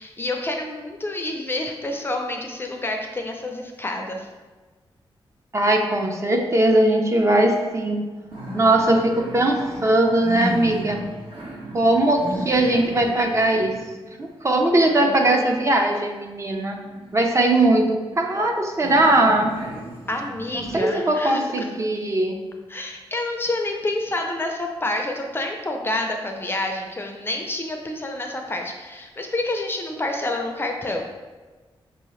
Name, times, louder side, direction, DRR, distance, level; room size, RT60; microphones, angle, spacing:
voice 1, 0.0-4.3 14.9-15.5 20.1-21.7 22.7-31.1, left 2 dB, 25° left, 3 dB, 0.4 m, -28 dB
voice 2, 5.5-8.0 8.5-11.0 11.7-13.7 14.2-16.8 17.1-19.5 20.5-22.4, right 1 dB, 30° right, 2 dB, 0.5 m, -20 dB
sound 1, 6.3-7.0 7.2-7.3 7.7-15.9 16.5-18.5 18.8-20.8, right 1 dB, 70° right, 1.1 m, -35 dB
5.5 x 2.7 x 3.1 m, 1.3 s
wide cardioid pair, 125°, 9 cm